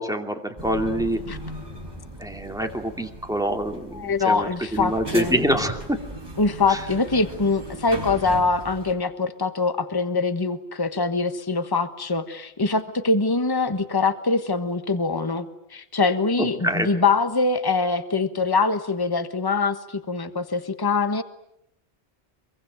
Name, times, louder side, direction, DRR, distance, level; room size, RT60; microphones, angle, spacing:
voice 1, 0.0-1.2 2.2-6.0 6.7-6.8 16.4-16.9, right 1 dB, 5° right, 3 dB, 2.5 m, -26 dB
sound 1, 0.6-8.9, right 1 dB, 20° right, 5.7 m, -37 dB
voice 2, 3.9-5.3 6.4-19.8 20.1-21.2, left 4 dB, 20° left, 10 dB, 1.3 m, -23 dB
25.0 x 23.5 x 9.3 m, 0.79 s
omnidirectional pair, 1.1 m